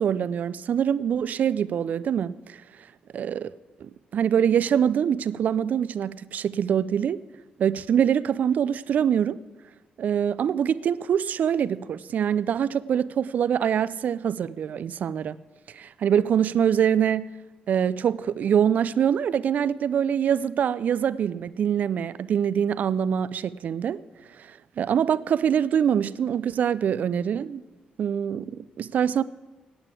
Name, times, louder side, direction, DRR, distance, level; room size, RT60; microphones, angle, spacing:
voice 1, 0.0-2.6 3.1-3.5 3.8-7.2 7.6-9.4 10.0-15.4 15.7-17.3 17.7-24.0 24.8-27.6 28.0-29.2, right 8 dB, 60° right, 0.4 m, -24 dB
8.9 x 8.9 x 8.3 m
cardioid pair, 80°, 3 cm